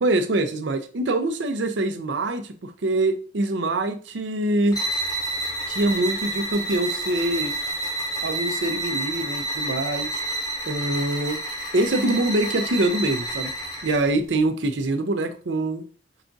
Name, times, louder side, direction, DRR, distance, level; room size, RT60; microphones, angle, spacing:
voice 1, 0.0-4.8 5.7-7.6 8.2-10.1 10.7-11.4 11.7-13.5 13.8-15.8, right 2 dB, 80° right, 7 dB, 0.6 m, -24 dB
sound 1, 4.7-14.1, right 1 dB, 20° left, 0.8 m, -29 dB
4.8 x 2.4 x 3.8 m, 0.38 s
head